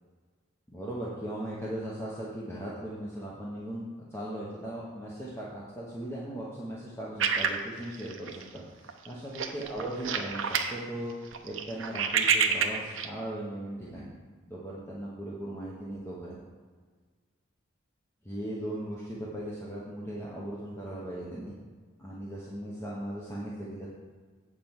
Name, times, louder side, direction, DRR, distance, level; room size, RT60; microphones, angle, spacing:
voice 1, 0.7-3.9 4.1-11.1 11.4-14.1 14.5-16.4 18.2-21.6 22.0-23.9, right 1 dB, 10° left, -6 dB, 1.1 m, -38 dB
sound 1, 7.2-8.6 8.9-9.1 9.3-10.8 11.1-13.1, right 6 dB, 70° right, 0.7 m, -28 dB
8.6 x 4.5 x 7.2 m, 1.5 s
head